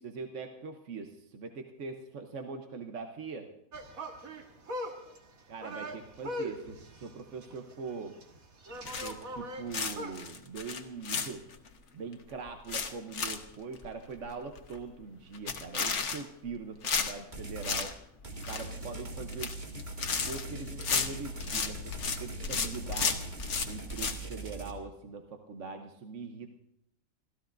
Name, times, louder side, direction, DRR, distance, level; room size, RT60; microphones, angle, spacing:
voice 1, 0.0-3.5 5.5-8.2 9.0-11.5 11.9-17.9 18.4-19.8 20.2-23.3 23.6-26.5, right 4 dB, 60° right, 4 dB, 1.3 m, -42 dB
sound 1, 3.7-10.3, equal, 85° right, 2.1 m, -41 dB
sound 2, 8.8-9.4 9.7-11.7 12.1-12.2 12.5-13.4 13.7-13.9 14.3-14.4 14.6-14.9 15.3-16.5 16.8-17.9 18.2-18.7 19.2-19.5 19.8-22.2 22.4-24.2, left 5 dB, 60° left, 1.4 m, -33 dB
sound 3, 17.3-17.9 18.2-24.7, right 2 dB, 35° right, 2.0 m, -41 dB
29.5 x 14.5 x 2.6 m, 0.77 s
omnidirectional pair, 1.4 m